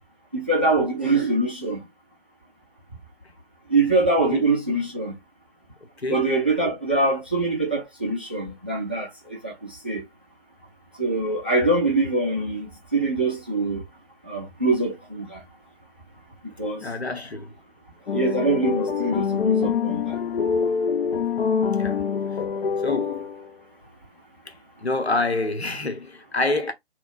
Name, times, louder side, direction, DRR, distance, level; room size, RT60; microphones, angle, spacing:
voice 1, 0.3-1.8 3.7-5.1 6.1-10.0 11.0-13.8 14.2-15.4 16.6-16.8 18.1-20.1, right 2 dB, 10° right, 0.4 m, -24 dB
voice 2, 6.0-6.3 16.8-17.5 21.8-22.0 22.8-23.3 24.5-24.6 24.8-26.7, left 2 dB, 90° left, 1.0 m, -27 dB
sound 1, 18.1-23.5, left 6 dB, 65° left, 0.5 m, -25 dB
4.3 x 2.2 x 2.4 m
figure-of-eight pair, 140°, 31 cm